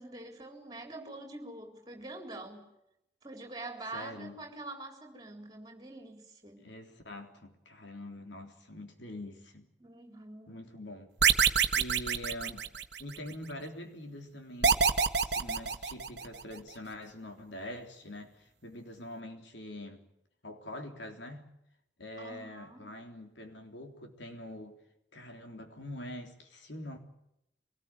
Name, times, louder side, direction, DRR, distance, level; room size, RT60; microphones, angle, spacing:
voice 1, 0.0-2.7 3.2-6.7 9.8-10.6 22.2-22.9, right 2 dB, 20° right, 3.9 m, -45 dB
voice 2, 3.9-4.4 6.6-9.7 10.5-11.1 11.7-12.7 13.0-14.9 15.2-20.0 20.4-21.5 22.0-24.8 25.1-27.0, left 1 dB, 75° left, 3.5 m, -44 dB
sound 1, 11.2-13.2 14.6-16.4, right 6 dB, 65° right, 1.5 m, -26 dB
24.0 x 19.0 x 9.2 m
head